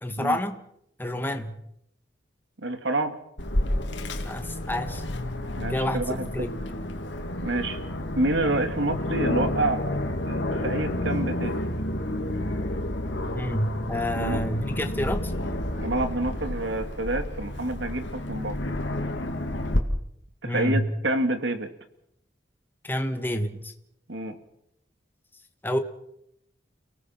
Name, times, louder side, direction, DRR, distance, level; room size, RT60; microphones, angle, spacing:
voice 1, 0.0-0.6 1.0-1.6 4.2-5.0 5.7-6.5 13.3-15.3 20.4-20.8 22.8-23.7 25.6-25.8, left 1 dB, 10° left, 6 dB, 1.7 m, -28 dB
voice 2, 2.6-3.2 5.6-6.3 7.4-7.8 8.2-10.0 10.2-11.6 14.1-14.4 15.8-18.6 20.4-21.7 24.1-24.4, right 2 dB, 85° right, 8 dB, 2.4 m, -28 dB
Aircraft, 3.4-19.8, left 1 dB, 90° left, 2.5 m, -30 dB
30.0 x 18.0 x 6.0 m, 0.76 s
head